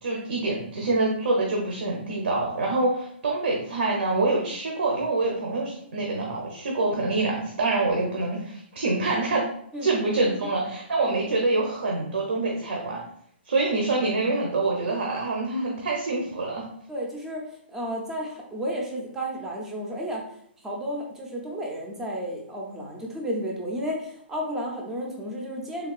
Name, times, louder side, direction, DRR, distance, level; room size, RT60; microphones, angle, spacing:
voice 1, 0.0-9.5 9.8-13.0 13.5-16.6, right 2 dB, 75° right, -1 dB, 0.7 m, -26 dB
voice 2, 16.9-20.3 20.6-25.9, equal, 5° right, -1 dB, 0.4 m, -32 dB
3.5 x 2.3 x 2.3 m, 0.67 s
hypercardioid pair, 165°, 6 cm